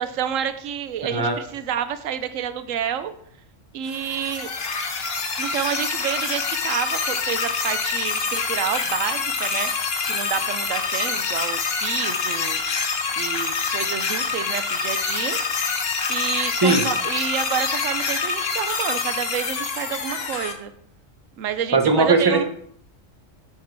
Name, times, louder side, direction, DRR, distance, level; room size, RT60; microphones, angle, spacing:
voice 1, 0.0-3.1 3.7-4.5 5.4-9.7 10.0-12.6 13.2-15.4 16.1-20.7 21.4-22.5, right 9 dB, 85° right, 11 dB, 1.0 m, -29 dB
sound 1, 3.9-20.5, left 4 dB, 55° left, 1.1 m, -26 dB
voice 2, 21.7-22.5, right 3 dB, 25° right, 5 dB, 0.6 m, -18 dB
7.4 x 4.7 x 4.6 m, 0.65 s
omnidirectional pair, 1.3 m